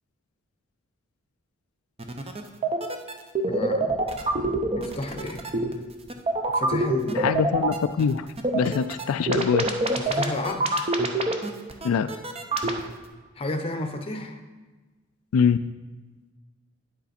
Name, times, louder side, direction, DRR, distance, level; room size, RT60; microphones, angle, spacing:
sound 1, 2.0-5.7 6.1-12.8, right 2 dB, 30° right, 0.7 m, -25 dB
voice 1, 3.5-4.0 4.7-5.4 6.5-7.3 9.9-10.8 13.4-14.4, left 2 dB, 25° left, 5 dB, 0.8 m, -31 dB
voice 2, 7.1-8.3 8.5-9.6 11.8-12.1 15.3-15.6, left 6 dB, 80° left, 11 dB, 0.3 m, -23 dB
9.5 x 8.1 x 4.3 m, 1.3 s
head